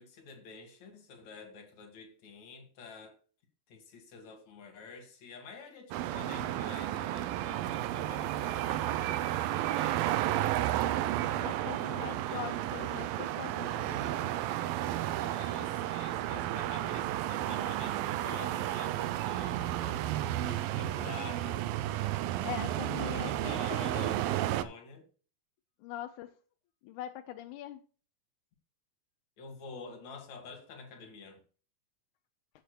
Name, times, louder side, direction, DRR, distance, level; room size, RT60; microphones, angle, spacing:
voice 1, 0.0-3.2 3.7-10.4 11.2-12.8 15.1-21.7 22.8-25.1 29.4-31.4, left 4 dB, 55° left, 3.0 m, -49 dB
sound 1, 5.9-24.6, right 13 dB, 85° right, 2.4 m, -32 dB
voice 2, 11.4-14.3 22.1-24.1 25.8-26.3 26.8-27.8, left 12 dB, 80° left, 1.9 m, -42 dB
13.5 x 8.3 x 2.3 m
omnidirectional pair, 4.1 m